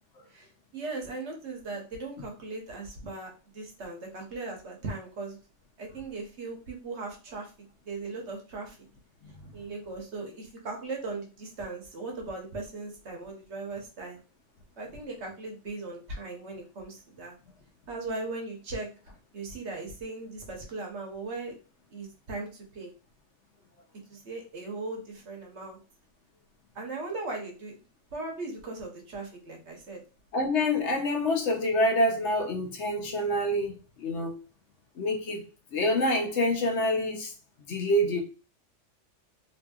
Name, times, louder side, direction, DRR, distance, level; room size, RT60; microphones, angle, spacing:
voice 1, 0.3-5.4 5.8-7.5 7.8-8.8 9.5-14.2 14.8-17.3 17.9-18.9 19.3-21.5 21.9-22.9 24.1-25.8 26.7-27.8 28.1-30.0, right 3 dB, 65° right, 1.1 m, -38 dB
voice 2, 9.2-9.5 30.3-34.4 35.0-35.4 35.7-37.3 37.7-38.2, left 1 dB, 70° left, 1.0 m, -27 dB
2.9 x 2.7 x 2.3 m
omnidirectional pair, 1.3 m